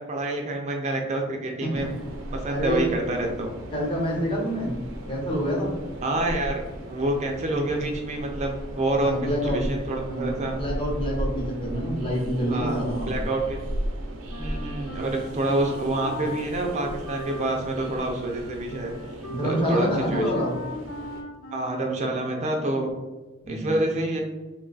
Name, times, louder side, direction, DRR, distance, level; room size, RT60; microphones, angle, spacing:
voice 1, 0.0-1.9 2.3-3.6 6.0-6.6 6.9-10.6 12.5-13.6 14.4-19.0 19.4-20.3 21.5-22.9 23.5-24.2, right 2 dB, 35° right, 2 dB, 0.4 m, -27 dB
Train, 1.7-21.2, right 1 dB, 90° right, 0.6 m, -36 dB
voice 2, 2.5-2.9 3.7-4.8 5.1-5.7 9.0-9.6 10.1-13.3 19.3-20.6 23.4-23.8, equal, 25° left, -3 dB, 0.8 m, -27 dB
Wind instrument woodwind instrument, 14.3-22.9, left 1 dB, 75° left, 0.7 m, -39 dB
3.1 x 2.2 x 3.8 m, 1.2 s
head